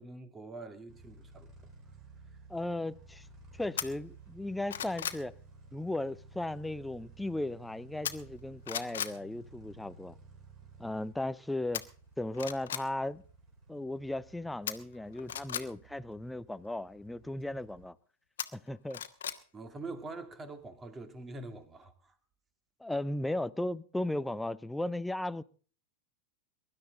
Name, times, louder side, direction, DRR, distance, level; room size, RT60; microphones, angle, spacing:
voice 1, 0.0-1.5 19.5-22.2, right 2 dB, 15° right, 2.2 m, -44 dB
sound 1, 0.9-17.9, right 3 dB, 30° right, 4.4 m, -55 dB
voice 2, 2.5-3.3 3.5-5.4 5.7-10.2 10.8-11.9 12.2-13.2 13.7-18.0 18.5-19.0 22.8-25.4, left 1 dB, 5° left, 0.6 m, -36 dB
sound 2, 3.8-3.9 4.4-5.2 8.0-8.4 8.7-9.2 11.7-11.8 12.3-12.8 14.7-15.6 18.4-19.4 19.8-19.9, left 9 dB, 60° left, 1.3 m, -36 dB
23.0 x 12.0 x 3.8 m
figure-of-eight pair, 90°, 0 cm